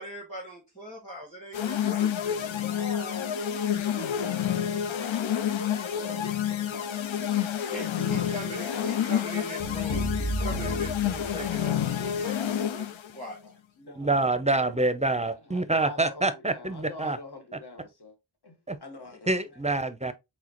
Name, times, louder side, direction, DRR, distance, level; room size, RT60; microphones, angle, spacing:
voice 1, 0.0-2.3 7.7-13.4, right 1 dB, 15° left, 2.0 m, -41 dB
sound 1, 1.5-13.1, left 10 dB, 90° left, 0.6 m, -29 dB
voice 2, 1.6-11.2 13.4-14.9 15.2-18.2 18.4-18.6 18.8-19.4, left 2 dB, 60° left, 1.5 m, -43 dB
sound 2, 9.6-11.9, right 1 dB, 40° left, 1.6 m, -33 dB
voice 3, 14.0-17.2 18.7-18.8 19.3-20.1, right 2 dB, 15° right, 0.6 m, -26 dB
4.8 x 3.8 x 2.9 m
wide cardioid pair, 50°, 45 cm